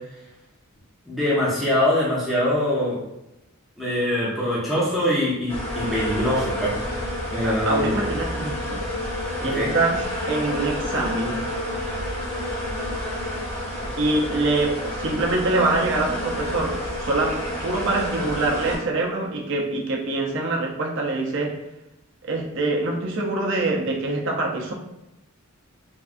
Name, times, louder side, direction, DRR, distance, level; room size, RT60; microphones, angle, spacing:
voice 1, 1.1-3.0 3.8-6.8 7.3-8.0 9.5-9.7, left 1 dB, ahead, -8 dB, 0.6 m, -23 dB
sound 1, 5.5-18.8, left 1 dB, 25° left, 1.0 m, -29 dB
voice 2, 7.4-8.8 9.4-11.5 14.0-21.6 22.2-24.7, right 2 dB, 55° right, -1 dB, 0.5 m, -25 dB
3.4 x 2.3 x 2.5 m, 0.91 s
head